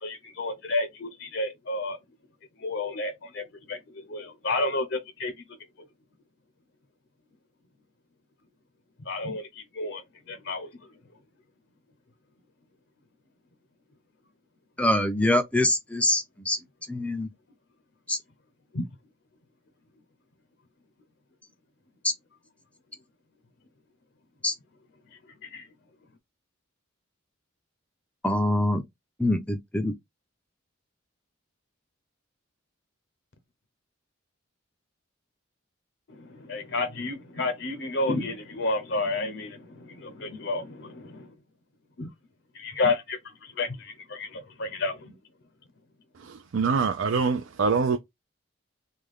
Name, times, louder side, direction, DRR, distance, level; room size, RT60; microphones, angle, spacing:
voice 1, 0.0-2.0 2.6-5.6 9.1-10.7 18.7-18.9 25.4-25.7 36.1-41.3 42.0-42.1 42.5-45.2, left 2 dB, 60° left, 0.6 m, -31 dB
voice 2, 14.8-16.6 16.9-17.3 18.1-18.2 24.4-24.5 28.2-28.8 29.2-29.9, left 1 dB, 5° left, 0.4 m, -24 dB
voice 3, 46.2-48.0, right 5 dB, 70° right, 0.4 m, -25 dB
3.2 x 2.2 x 3.6 m
head